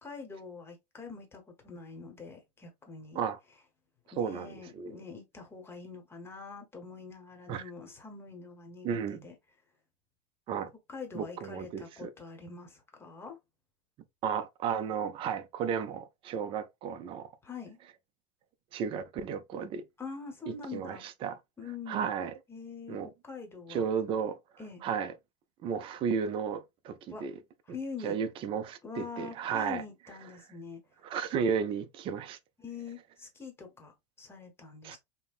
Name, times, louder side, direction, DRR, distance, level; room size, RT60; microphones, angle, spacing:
voice 1, 0.0-3.2 4.1-9.3 10.9-13.4 17.4-17.8 20.0-21.0 21.6-22.1 22.5-23.0 23.2-23.9 24.6-24.8 27.1-27.3 27.7-28.2 28.8-30.8 32.6-35.0, left 4 dB, 15° left, 0.9 m, -44 dB
voice 2, 4.2-5.0 7.5-7.6 8.8-9.3 10.5-10.7 11.1-12.1 14.2-17.3 18.7-19.8 20.5-21.4 21.9-22.3 22.9-23.1 23.7-24.4 24.8-25.1 25.6-27.3 27.7-27.8 28.0-29.8 31.0-32.4 34.8-35.0, right 7 dB, 35° right, 0.5 m, -33 dB
5.3 x 2.1 x 2.4 m
supercardioid pair, 140°, 16 cm